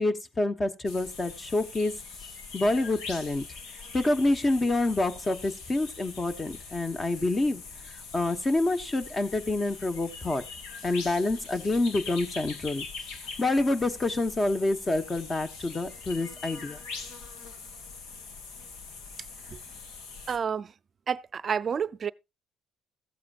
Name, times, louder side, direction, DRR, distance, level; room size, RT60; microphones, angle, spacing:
voice 1, 0.0-1.9 2.5-3.5 3.7-7.6 8.1-10.4 10.8-12.9 13.4-16.8, left 2 dB, 25° left, 1.2 m, -27 dB
sound 1, 0.9-20.4, left 4 dB, 75° left, 1.8 m, -43 dB
voice 2, 20.3-20.7 21.1-22.1, right 7 dB, 40° right, 0.5 m, -29 dB
14.5 x 8.5 x 2.5 m
supercardioid pair, 90°, 0 cm